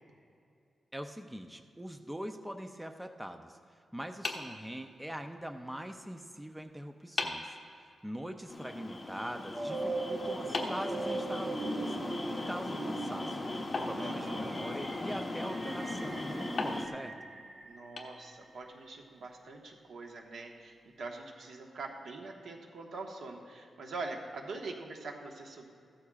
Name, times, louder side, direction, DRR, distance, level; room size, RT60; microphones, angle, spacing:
voice 1, 0.9-3.6 3.9-13.4 13.8-17.1, equal, 5° right, 6 dB, 0.5 m, -42 dB
sound 1, 4.2-5.4 6.6-6.7 7.2-7.6 10.5-11.7 13.7-14.8 16.6-18.6, left 3 dB, 45° left, 1.2 m, -40 dB
sound 2, 8.5-16.9, left 2 dB, 20° left, 1.0 m, -38 dB
sound 3, 9.5-18.5, right 3 dB, 35° right, 0.9 m, -40 dB
voice 2, 14.0-14.6 17.6-25.7, right 3 dB, 85° right, 1 dB, 1.4 m, -44 dB
15.5 x 13.0 x 2.4 m, 2.4 s
wide cardioid pair, 145°, 0 cm